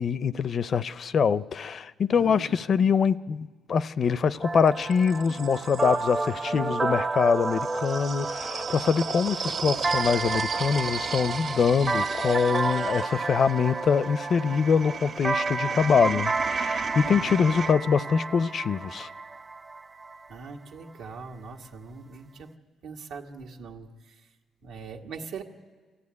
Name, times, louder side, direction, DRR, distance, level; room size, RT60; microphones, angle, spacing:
voice 1, 0.0-19.1, left 6 dB, 50° left, 16 dB, 0.5 m, -24 dB
voice 2, 2.2-2.6 17.0-17.2 20.3-22.5 22.8-24.3 24.6-25.4, right 5 dB, 85° right, 2 dB, 1.8 m, -41 dB
sound 1, 4.1-6.5 7.3-17.7, right 6 dB, 60° right, 1.6 m, -36 dB
sound 2, 4.4-20.2, right 3 dB, 30° right, 0.7 m, -31 dB
24.5 x 14.0 x 9.7 m, 1.5 s
cardioid pair, 90°, 0 cm